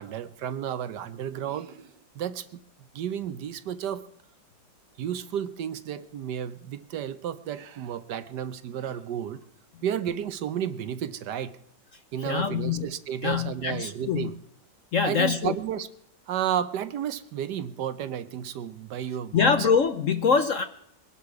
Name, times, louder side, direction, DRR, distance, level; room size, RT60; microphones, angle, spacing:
voice 1, 0.0-2.6 2.9-4.0 5.0-9.4 9.8-11.6 12.1-14.3 15.0-15.9 16.3-19.7, right 9 dB, 70° right, 13 dB, 1.2 m, -32 dB
voice 2, 12.2-12.8 13.2-14.3 14.9-15.5 19.3-20.6, left 6 dB, 60° left, 9 dB, 0.9 m, -24 dB
22.0 x 11.5 x 4.7 m, 0.75 s
omnidirectional pair, 2.0 m